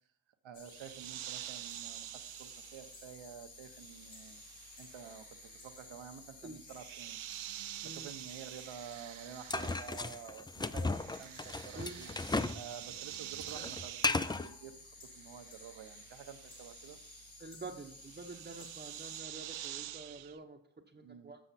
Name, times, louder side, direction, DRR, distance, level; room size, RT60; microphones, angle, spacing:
voice 1, 0.4-7.3 7.8-12.1 12.5-14.8 15.0-17.0 21.0-21.3, right 7 dB, 75° right, 8 dB, 1.0 m, -50 dB
sound 1, 0.5-19.2, left 3 dB, 70° left, 1.8 m, -55 dB
sound 2, 0.7-10.4 10.6-20.4, right 13 dB, 90° right, 0.6 m, -48 dB
sound 3, 9.5-12.6 12.9-14.5, left 3 dB, 10° left, 0.3 m, -35 dB
voice 2, 17.4-20.6 20.9-21.4, right 3 dB, 20° right, 0 dB, 0.9 m, -47 dB
7.6 x 6.4 x 4.2 m, 0.72 s
cardioid pair, 65°, 47 cm